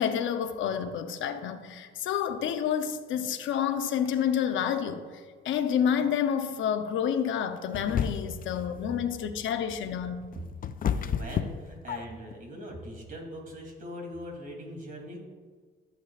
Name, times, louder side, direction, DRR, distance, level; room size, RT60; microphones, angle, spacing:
voice 1, 0.0-10.3, left 8 dB, 75° left, 0.8 m, -29 dB
sound 1, 7.7-8.5 10.0-12.3, left 8 dB, 45° left, 0.5 m, -30 dB
voice 2, 10.9-15.2, equal, 45° right, 3.0 m, -41 dB
15.0 x 8.2 x 2.5 m
cardioid pair, 90°, 20 cm